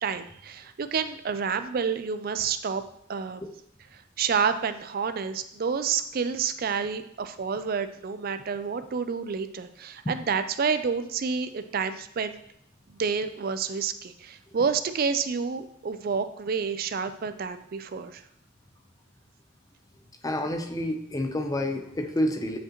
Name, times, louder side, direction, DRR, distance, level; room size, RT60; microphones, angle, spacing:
voice 1, 0.0-2.8 3.1-3.4 3.9-12.4 13.0-18.2, right 6 dB, 45° right, 11 dB, 0.4 m, -29 dB
voice 2, 20.2-22.6, left 1 dB, 15° left, 5 dB, 0.6 m, -28 dB
8.9 x 5.1 x 2.9 m, 0.72 s
head